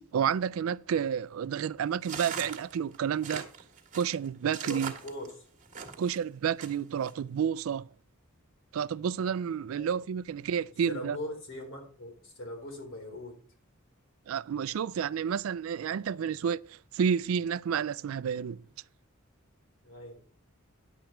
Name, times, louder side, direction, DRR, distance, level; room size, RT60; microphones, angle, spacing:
voice 1, 0.1-3.4 3.9-4.9 6.0-7.9 8.7-11.2 14.3-18.6, right 7 dB, 75° right, 0.3 m, -30 dB
pisar monton papeles, 2.0-6.2 6.6-7.1, right 6 dB, 40° right, 1.6 m, -40 dB
voice 2, 4.6-5.5 9.8-10.0 10.9-13.4 19.8-20.2, left 1 dB, 65° left, 3.6 m, -41 dB
10.5 x 7.8 x 4.4 m
head